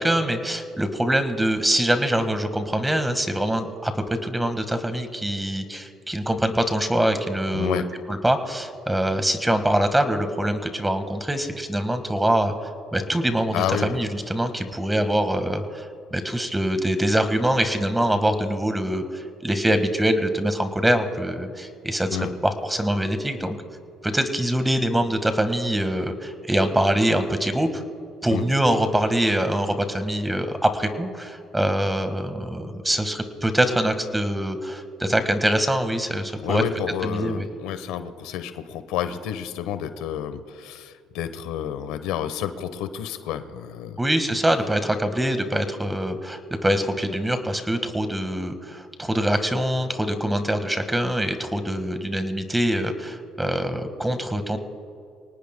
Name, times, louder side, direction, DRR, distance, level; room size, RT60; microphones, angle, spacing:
voice 1, 0.0-7.8 8.1-12.5 12.9-23.6 24.0-27.8 28.2-36.6 37.0-37.5 44.0-54.6, right 1 dB, 10° right, 8 dB, 1.5 m, -24 dB
voice 2, 7.5-7.9 13.5-14.0 22.1-22.3 28.3-28.4 36.4-44.0, left 9 dB, 85° left, 10 dB, 0.9 m, -29 dB
24.5 x 18.5 x 2.2 m, 2.4 s
cardioid pair, 100°, 0 cm